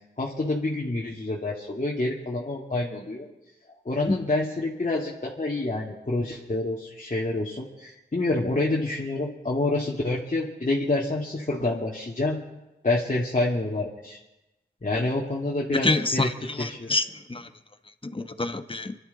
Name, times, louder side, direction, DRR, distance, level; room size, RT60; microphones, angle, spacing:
voice 1, 0.2-3.3 3.9-12.4 12.8-14.2 14.8-16.3 16.6-17.0, left 2 dB, 45° left, 2.4 m, -27 dB
voice 2, 15.7-17.5 18.1-19.0, left 2 dB, 30° left, 1.2 m, -27 dB
25.0 x 12.0 x 4.2 m
cardioid pair, 40°, 19 cm